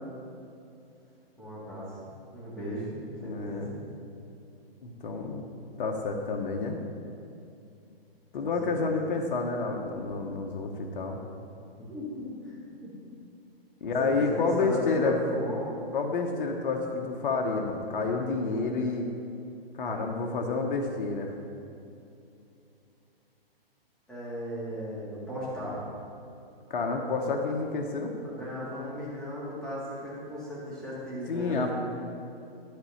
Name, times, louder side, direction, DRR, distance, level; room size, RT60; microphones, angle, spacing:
voice 1, 1.4-1.9 2.3-3.8 8.4-8.5 8.8-8.9 11.8-12.9 14.0-15.8 24.1-25.8 28.2-31.7, equal, ahead, -8 dB, 1.9 m, -36 dB
voice 2, 3.2-3.7 4.8-5.5 5.8-6.8 8.3-11.2 13.8-15.1 15.9-19.1 19.8-21.3 26.7-28.1 31.3-31.7, left 4 dB, 60° left, 2 dB, 1.1 m, -29 dB
11.5 x 4.2 x 7.1 m, 2.7 s
hypercardioid pair, 155°, 30 cm